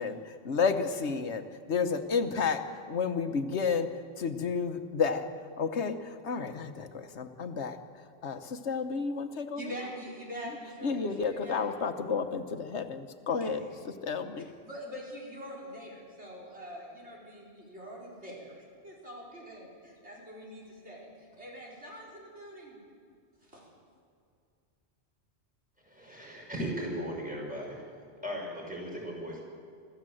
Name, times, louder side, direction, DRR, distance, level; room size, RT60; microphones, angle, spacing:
voice 1, 0.0-2.6 2.9-3.9 4.2-5.3 5.6-7.8 8.2-9.6 10.8-13.6 14.0-14.4, left 5 dB, 80° left, 8 dB, 1.4 m, -31 dB
voice 2, 9.6-11.7 13.4-13.7 14.6-18.6 18.8-22.8 23.4-23.7, equal, 75° right, -3 dB, 5.3 m, -44 dB
voice 3, 25.8-27.8 28.2-29.4, equal, 5° right, -3 dB, 5.9 m, -37 dB
25.0 x 14.0 x 7.8 m, 2.3 s
omnidirectional pair, 1.1 m